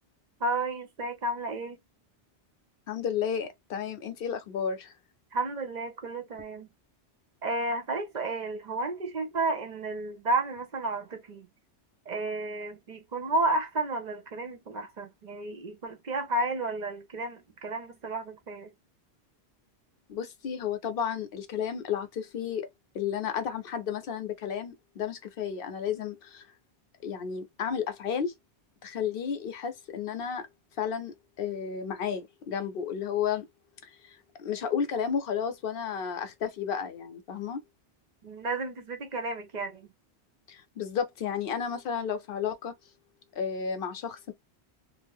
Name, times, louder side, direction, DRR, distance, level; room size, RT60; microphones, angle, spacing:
voice 1, 0.4-1.8 5.3-6.7 7.4-11.5 12.1-18.7 38.2-39.9, right 2 dB, 50° right, 0.6 m, -32 dB
voice 2, 2.9-4.9 20.1-22.7 22.9-26.5 27.0-28.3 28.8-30.5 30.8-33.4 33.8-37.6 40.5-42.7 43.3-44.3, left 7 dB, 60° left, 0.8 m, -32 dB
2.4 x 2.0 x 3.4 m
omnidirectional pair, 1.1 m